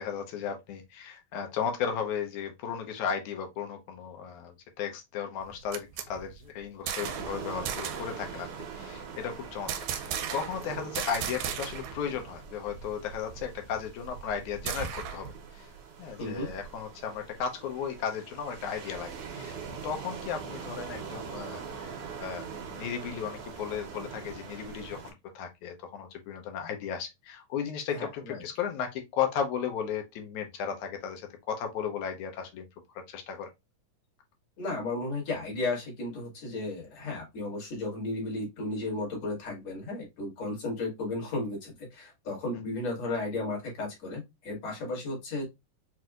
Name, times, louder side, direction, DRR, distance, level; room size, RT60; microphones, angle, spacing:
voice 1, 0.0-8.5 8.7-15.7 16.0-19.5 19.8-21.9 22.2-32.7 33.1-33.5, left 7 dB, 75° left, 2.1 m, -35 dB
sound 1, 5.4-7.4 7.7-8.2 9.7-10.7 11.0-12.0 12.3-12.4 12.7-15.3, right 9 dB, 85° right, 2.1 m, -36 dB
sound 2, 7.0-25.1, right 6 dB, 65° right, 1.5 m, -42 dB
voice 2, 16.2-16.5 27.9-28.4 34.6-45.4, left 2 dB, 55° left, 3.0 m, -34 dB
5.9 x 2.7 x 2.4 m
omnidirectional pair, 3.7 m